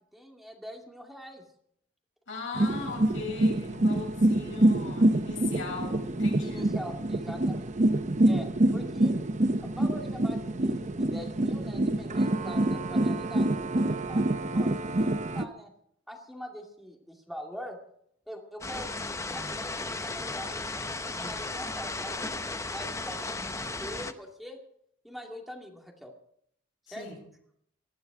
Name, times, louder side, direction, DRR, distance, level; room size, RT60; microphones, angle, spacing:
voice 1, 0.1-1.4 6.4-7.8 8.2-9.1 9.6-13.5 13.8-15.7 16.1-17.8 18.3-19.0 19.3-24.6 25.0-26.1 26.9-27.1, equal, ahead, 1 dB, 2.3 m, -43 dB
voice 2, 2.3-6.7 27.0-27.2, left 3 dB, 75° left, 0 dB, 7.5 m, -39 dB
sound 1, 2.5-15.4, right 1 dB, 40° right, 0.9 m, -26 dB
sound 2, 18.6-24.1, left 3 dB, 15° left, 0.9 m, -35 dB
20.0 x 13.5 x 4.9 m, 0.67 s
head